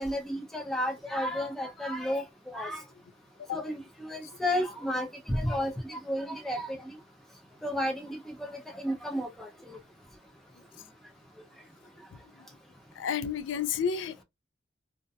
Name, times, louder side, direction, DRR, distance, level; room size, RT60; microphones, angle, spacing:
voice 1, 0.0-2.2 2.5-2.8 3.5-6.8 7.6-9.8, equal, ahead, 0.6 m, -32 dB
voice 2, 13.0-14.2, left 7 dB, 80° left, 0.3 m, -31 dB
2.6 x 2.2 x 2.3 m
head